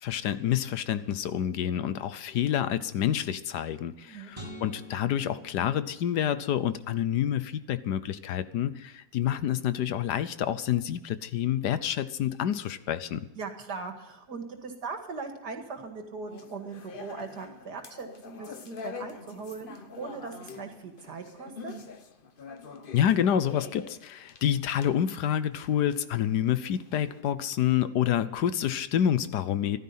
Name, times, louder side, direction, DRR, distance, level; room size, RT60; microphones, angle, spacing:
voice 1, 0.0-13.2 22.9-29.8, left 10 dB, 80° left, 13 dB, 1.4 m, -28 dB
voice 2, 4.0-4.3 13.4-21.7, right 4 dB, 75° right, 5 dB, 2.6 m, -40 dB
sound 1, 4.3-6.7, equal, 15° right, 3.9 m, -46 dB
sound 2, 16.3-27.2, left 5 dB, 40° left, 1.0 m, -45 dB
15.0 x 12.5 x 5.6 m, 0.92 s
omnidirectional pair, 1.8 m